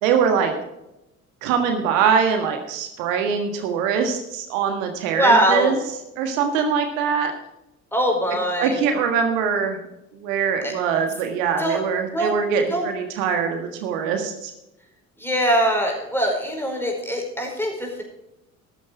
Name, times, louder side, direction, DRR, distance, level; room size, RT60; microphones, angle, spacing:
voice 1, 0.0-0.5 1.4-5.8 6.2-7.3 8.6-9.8 10.2-14.5, right 6 dB, 65° right, 5 dB, 1.7 m, -22 dB
voice 2, 5.1-5.7 7.9-8.8 10.6-10.7 11.6-11.8 12.1-12.3 12.7-12.8 15.2-18.0, right 1 dB, 5° left, 1 dB, 4.9 m, -22 dB
13.5 x 10.0 x 4.6 m, 0.90 s
figure-of-eight pair, 55°, 41 cm